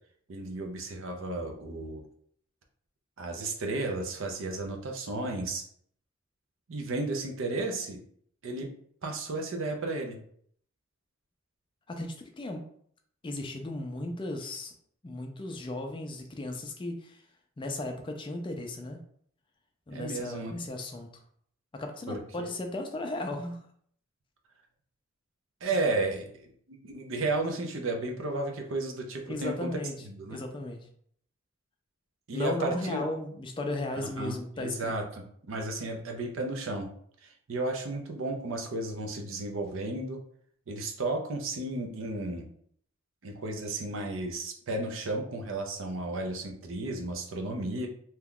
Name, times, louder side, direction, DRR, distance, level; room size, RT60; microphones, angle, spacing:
voice 1, 0.3-2.0 3.2-5.6 6.7-8.0 8.4-8.7 9.0-10.2 19.9-20.6 22.1-22.5 25.6-29.7 30.1-30.4 32.3-33.0 34.0-35.0 35.5-36.9 37.2-40.2 40.7-42.5 43.2-47.9, right 2 dB, 65° right, 3 dB, 0.6 m, -33 dB
voice 2, 11.9-12.7 13.2-14.7 15.0-17.2 17.6-19.0 19.9-21.2 21.7-23.6 29.3-30.0 30.3-30.9 32.3-35.0, left 1 dB, 25° left, 4 dB, 0.3 m, -35 dB
2.8 x 2.3 x 3.6 m, 0.63 s
head